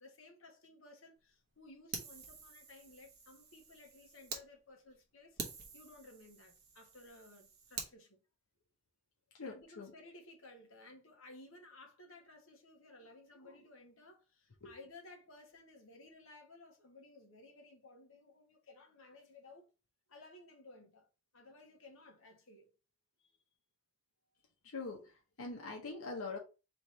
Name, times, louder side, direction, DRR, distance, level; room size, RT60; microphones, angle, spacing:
voice 1, 0.0-5.4 5.7-8.2 9.4-19.7 20.1-21.1 21.3-22.7 23.2-23.3, left 2 dB, 70° left, 1.1 m, -57 dB
Fire, 1.9-4.4 4.9-5.0 5.4-7.9, right 5 dB, 50° right, 1.0 m, -47 dB
voice 2, 9.3-9.9 13.4-13.6 14.6-14.7 24.6-26.4, left 3 dB, 85° left, 0.9 m, -44 dB
3.2 x 3.1 x 4.2 m
head